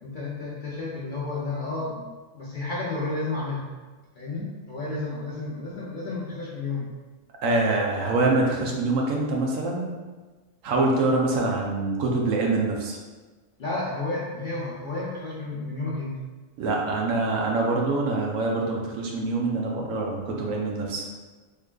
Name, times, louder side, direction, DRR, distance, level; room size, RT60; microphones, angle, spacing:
voice 1, 0.0-3.7 4.1-6.9 13.6-16.2, left 2 dB, 50° left, -7 dB, 0.6 m, -32 dB
voice 2, 7.4-10.0 10.6-13.0 16.6-21.1, right 3 dB, 80° right, -1 dB, 1.1 m, -25 dB
3.7 x 3.2 x 2.3 m, 1.3 s
omnidirectional pair, 1.4 m